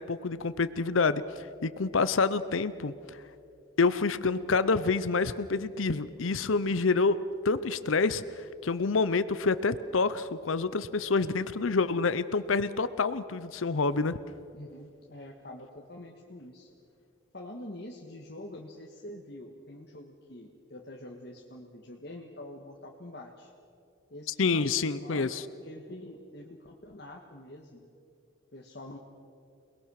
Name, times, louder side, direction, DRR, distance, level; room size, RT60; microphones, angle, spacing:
voice 1, 0.0-3.2 3.8-7.2 7.4-14.2 24.4-25.4, left 4 dB, 85° left, 14 dB, 0.7 m, -27 dB
voice 2, 14.5-16.7 17.3-23.5 24.1-27.9 28.5-29.0, left 1 dB, 55° left, 0 dB, 1.7 m, -45 dB
28.5 x 20.5 x 6.5 m, 2.5 s
head